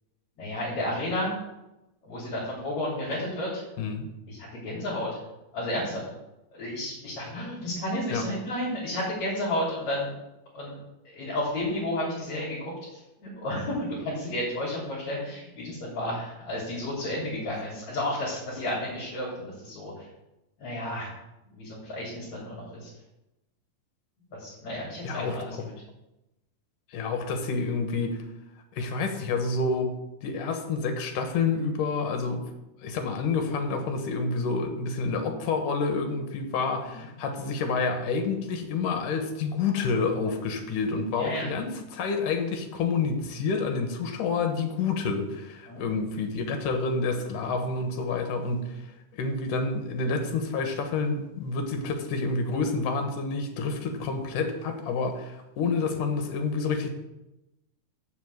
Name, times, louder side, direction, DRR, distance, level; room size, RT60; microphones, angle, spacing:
voice 1, 0.4-1.3 2.0-3.6 4.3-5.2 5.5-6.0 6.5-10.1 10.5-10.8 11.1-20.1 20.6-21.1 21.5-22.9 24.4-25.6 36.9-37.4 41.2-41.5 45.7-45.9, left 1 dB, 55° left, -7 dB, 4.2 m, -32 dB
voice 2, 3.8-4.1 8.1-8.3 25.0-25.7 26.9-28.2 28.7-30.0 30.2-32.5 32.8-48.9 49.1-56.9, left 4 dB, 75° left, 6 dB, 2.8 m, -28 dB
7.2 x 7.2 x 7.8 m, 0.94 s
omnidirectional pair, 3.9 m